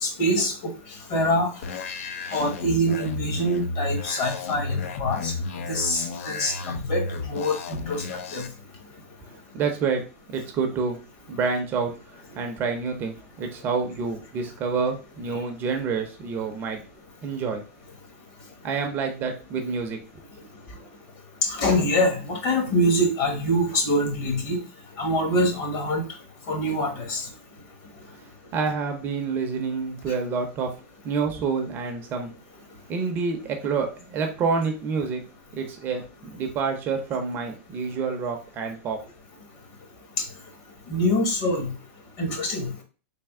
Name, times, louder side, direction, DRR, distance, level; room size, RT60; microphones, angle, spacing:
voice 1, 0.0-0.7 1.1-1.5 2.3-5.3 5.7-8.0 8.3-8.5 21.4-24.6 25.0-26.0 26.5-27.2 40.9-41.7 42.2-42.7, equal, 40° left, 3 dB, 1.1 m, -24 dB
sound 1, 1.6-8.5, left 3 dB, 70° left, 0.5 m, -32 dB
voice 2, 9.5-10.0 10.3-11.0 11.3-11.9 12.4-16.8 17.2-17.6 18.6-20.0 28.5-30.7 31.0-32.3 32.9-35.2 35.5-39.0, right 5 dB, 25° right, 4 dB, 0.6 m, -28 dB
3.4 x 2.6 x 3.6 m, 0.36 s
supercardioid pair, 155°, 8 cm